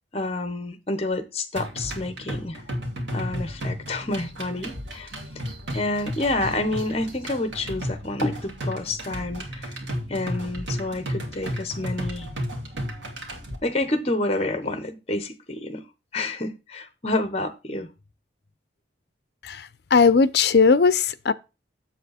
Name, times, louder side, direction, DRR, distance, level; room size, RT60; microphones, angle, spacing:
voice 1, 0.1-2.6 3.1-5.1 5.7-9.8 10.1-12.3 13.6-15.8 16.1-17.9, left 2 dB, 35° left, 1.1 m, -28 dB
sound 1, 1.6-13.6, equal, 75° right, 2.2 m, -33 dB
voice 2, 19.4-21.3, left 5 dB, 60° left, 0.5 m, -18 dB
7.6 x 7.5 x 4.2 m
head